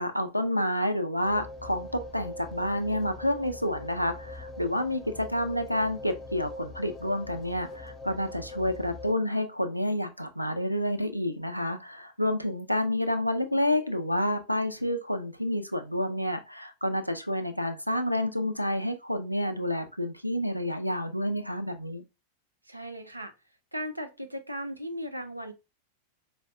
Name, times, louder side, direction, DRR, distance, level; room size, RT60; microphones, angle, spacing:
voice 1, 0.0-22.0, left 1 dB, 90° left, 0.4 m, -29 dB
sound 1, 1.2-9.1, left 1 dB, 25° left, 0.6 m, -42 dB
voice 2, 22.7-23.3 23.7-25.5, equal, 85° right, 0.5 m, -37 dB
4.5 x 2.1 x 2.6 m
figure-of-eight pair, 90°, 0 cm